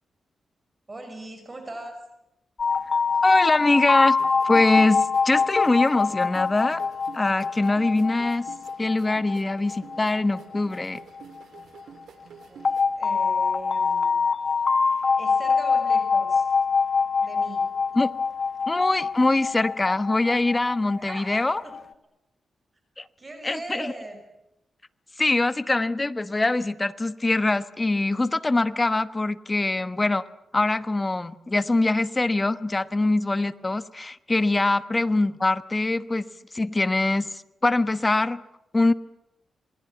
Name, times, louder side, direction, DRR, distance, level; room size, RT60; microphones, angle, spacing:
voice 1, 0.9-2.0 12.5-12.6 13.0-14.3 14.6-16.5 17.2-17.7 21.0-21.7 23.2-24.2, right 2 dB, 25° right, 6 dB, 6.0 m, -40 dB
sound 1, 2.6-11.4 12.6-21.8, left 5 dB, 45° left, 1.5 m, -25 dB
voice 2, 3.2-4.2 4.4-6.8 7.1-8.5 8.8-11.0 18.0-18.1 18.7-21.6 23.0-23.1 23.4-23.9 25.2-30.3 30.5-36.2 36.5-38.4 38.7-38.9, left 2 dB, 20° left, 12 dB, 1.1 m, -23 dB
sound 2, 4.2-12.8, right 7 dB, 85° right, 2.8 m, -48 dB
27.0 x 20.5 x 9.2 m, 0.87 s
cardioid pair, 100°, 0 cm